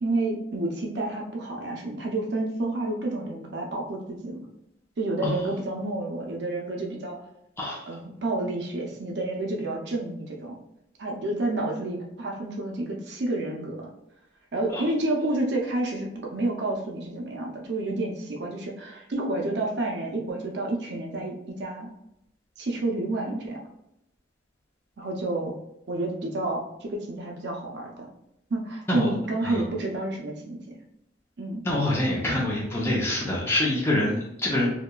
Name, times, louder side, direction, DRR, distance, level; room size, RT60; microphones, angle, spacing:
voice 1, 0.0-4.4 5.0-7.2 7.9-10.6 11.0-13.9 14.5-21.9 22.6-23.6 25.0-25.5 25.9-28.1 28.5-30.6 31.4-31.7 32.3-32.4, right 2 dB, 65° right, 0 dB, 0.5 m, -29 dB
voice 2, 31.6-34.7, left 1 dB, 15° left, -4 dB, 0.5 m, -25 dB
2.8 x 2.2 x 2.2 m, 0.82 s
head